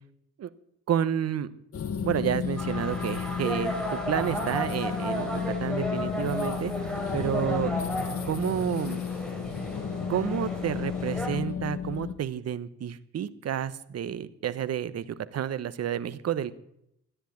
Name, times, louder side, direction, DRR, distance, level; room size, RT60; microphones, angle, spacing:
voice 1, 0.9-1.5 2.0-6.7 7.1-7.7 8.2-9.0 10.1-16.5, right 9 dB, 55° right, 14 dB, 1.1 m, -30 dB
sound 1, 1.7-12.1, left 7 dB, 50° left, 1.4 m, -33 dB
sound 2, 2.6-11.3, equal, ahead, 4.3 m, -34 dB
13.5 x 10.0 x 8.5 m, 0.76 s
cardioid pair, 90°, 30 cm